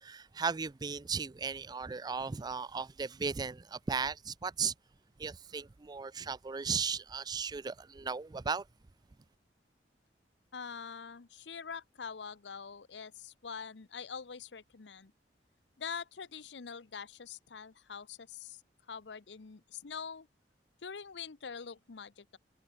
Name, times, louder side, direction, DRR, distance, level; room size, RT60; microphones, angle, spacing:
voice 1, 0.0-4.7 5.2-8.7, right 5 dB, 25° right, 0.4 m, -36 dB
voice 2, 10.5-15.1 15.8-18.6 18.9-20.3 20.8-22.4, left 6 dB, 85° left, 0.8 m, -44 dB
head